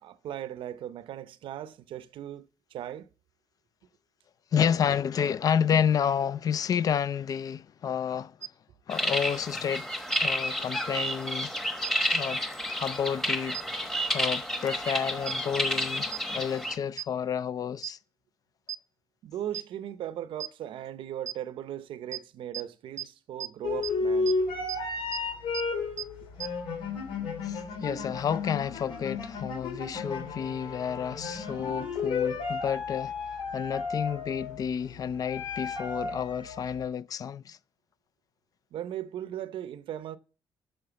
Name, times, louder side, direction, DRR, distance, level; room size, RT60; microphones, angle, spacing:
voice 1, 0.0-3.1 19.2-24.4 38.7-40.2, right 11 dB, 75° right, 0.7 m, -38 dB
voice 2, 4.5-8.3 8.9-9.9 10.2-11.5 12.1-12.4 12.8-18.0 27.4-33.1 33.5-37.6, left 8 dB, 45° left, 0.4 m, -30 dB
sound 1, 8.4-8.5 10.1-10.2 11.8-11.9 13.5-13.6 15.3-15.4 16.1-16.2 17.0-17.1 17.8-17.9 18.7-18.8 19.5-19.6 20.4-20.5 21.3-21.4 22.1-22.2 22.5-22.6 23.0-23.1 23.4-23.5 23.8-23.9 24.3-24.4 24.7-24.8 25.1-25.2 25.5-25.6 26.0-26.1 26.4-26.5, right 10 dB, 35° right, 0.4 m, -34 dB
sound 2, 8.9-16.7, equal, 5° left, 1.0 m, -30 dB
sound 3, 23.6-36.9, left 4 dB, 85° left, 3.0 m, -33 dB
8.9 x 6.5 x 6.9 m
cardioid pair, 140°, 9 cm